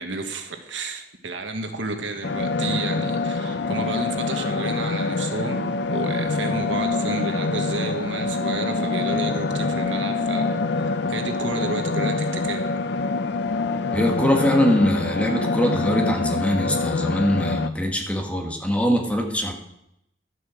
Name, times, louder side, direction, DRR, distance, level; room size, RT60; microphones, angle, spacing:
voice 1, 0.0-12.7, right 3 dB, 75° right, 6 dB, 1.5 m, -31 dB
sound 1, 2.2-17.7, left 3 dB, 65° left, 0.6 m, -25 dB
voice 2, 13.9-19.5, equal, 5° left, 2 dB, 1.6 m, -22 dB
12.0 x 8.3 x 6.4 m, 0.80 s
head